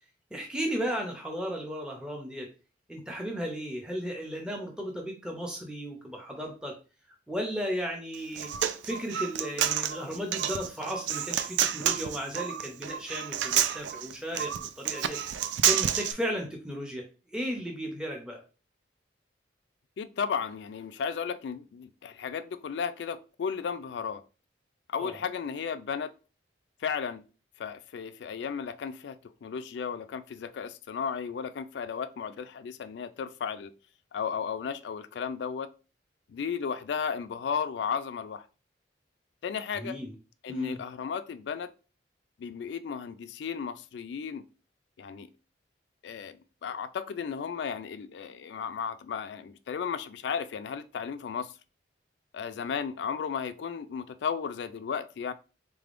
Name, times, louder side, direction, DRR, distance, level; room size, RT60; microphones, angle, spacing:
voice 1, 0.3-2.5 2.9-6.7 7.3-8.5 8.8-15.2 15.6-17.0 17.3-18.4 25.0-25.2 39.7-40.1 40.5-40.8, equal, 5° right, 0.5 m, -35 dB
Human voice, 8.1-16.1, right 10 dB, 70° right, 0.3 m, -29 dB
voice 2, 20.0-24.2 24.9-26.1 26.8-27.2 27.6-33.7 34.1-35.7 36.3-38.5 39.4-40.0 40.4-41.7 42.4-44.5 45.0-45.3 46.0-51.5 52.3-55.3, left 6 dB, 65° left, 0.3 m, -34 dB
3.6 x 3.4 x 2.5 m
head